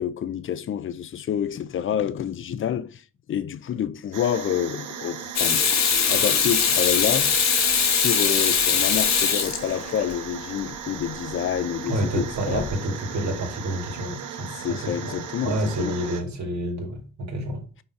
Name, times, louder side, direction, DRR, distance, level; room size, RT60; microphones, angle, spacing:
voice 1, 0.0-3.0 3.3-5.6 6.1-7.3 7.8-12.7 14.6-16.0, left 9 dB, 45° left, 0.6 m, -28 dB
sound 1, 4.1-16.2, right 7 dB, 85° right, 1.1 m, -37 dB
Water tap faucet / Sink (filling or washing), 5.4-10.1 12.5-12.7, left 6 dB, 60° left, 1.3 m, -21 dB
voice 2, 11.9-17.6, right 1 dB, 65° right, 2.2 m, -29 dB
5.7 x 4.4 x 4.6 m
cardioid pair, 90°, 30 cm